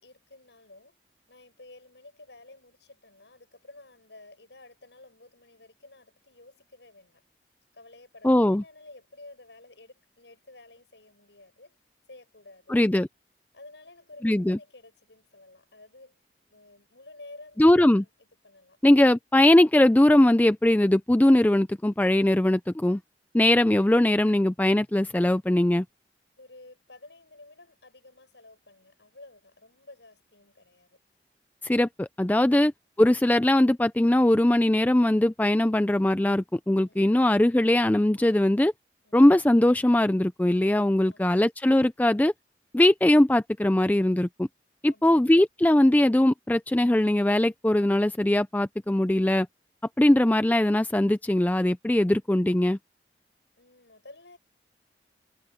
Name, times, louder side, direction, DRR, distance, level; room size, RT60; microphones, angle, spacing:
voice 1, 0.0-1.0 1.3-7.2 7.7-11.8 12.1-12.8 13.5-16.2 16.5-18.1 18.4-19.2 26.4-31.0 36.9-37.2 39.0-39.3 41.0-41.4 44.8-45.2 53.6-54.4, left 2 dB, 80° left, 7.3 m, -52 dB
voice 2, 8.2-8.6 12.7-13.1 14.2-14.6 17.6-18.0 18.8-23.0 23.3-25.8 31.6-32.7 33.0-38.7 39.1-42.3 42.7-44.5 44.8-49.5 50.0-52.8, left 1 dB, 10° left, 0.3 m, -21 dB
head